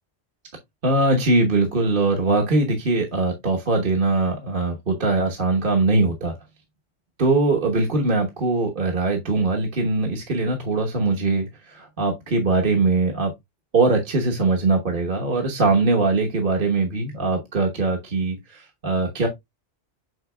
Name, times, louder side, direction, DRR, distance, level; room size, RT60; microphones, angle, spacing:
voice 1, 0.8-6.3 7.2-13.3 13.7-19.3, right 3 dB, 45° right, 1.3 m, -21 dB
7.9 x 5.6 x 2.2 m
omnidirectional pair, 1.3 m